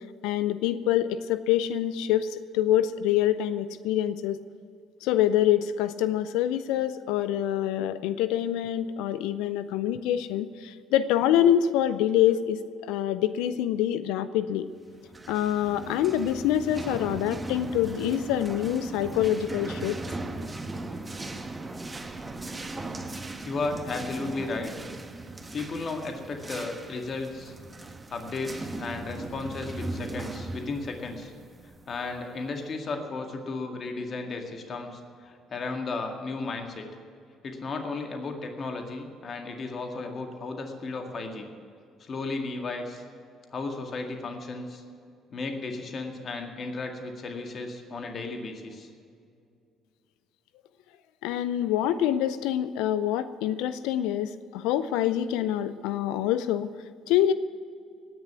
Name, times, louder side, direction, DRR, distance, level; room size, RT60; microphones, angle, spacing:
voice 1, 0.2-4.4 5.0-14.7 15.3-20.0 51.2-56.7 57.1-57.3, left 11 dB, 80° left, 14 dB, 0.5 m, -26 dB
sound 1, 15.0-32.4, right 2 dB, 20° right, 1.4 m, -38 dB
voice 2, 23.4-24.7 25.5-27.5 28.1-31.3 31.9-36.8 37.4-41.5 42.0-43.0 43.5-44.8 45.3-48.9, left 3 dB, 50° left, 4 dB, 2.0 m, -34 dB
18.0 x 7.0 x 9.5 m, 2.4 s
hypercardioid pair, 60°, 0 cm